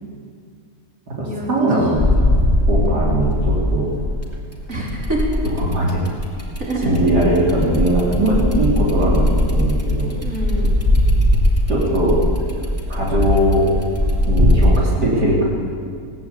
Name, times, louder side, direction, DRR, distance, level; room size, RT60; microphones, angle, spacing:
voice 1, 1.2-2.0 2.7-3.9 5.6-6.0 6.8-10.1 11.7-12.2 12.9-13.7 14.3-15.4, right 1 dB, 80° right, -5 dB, 4.2 m, -19 dB
sound 1, 1.9-4.4 4.9-14.8, left 1 dB, 10° right, 2.7 m, -19 dB
voice 2, 2.7-3.1 4.7-5.2 6.6-6.9 10.2-10.8, right 2 dB, 50° right, -3 dB, 4.4 m, -27 dB
20.0 x 17.0 x 8.5 m, 2.2 s
omnidirectional pair, 1.7 m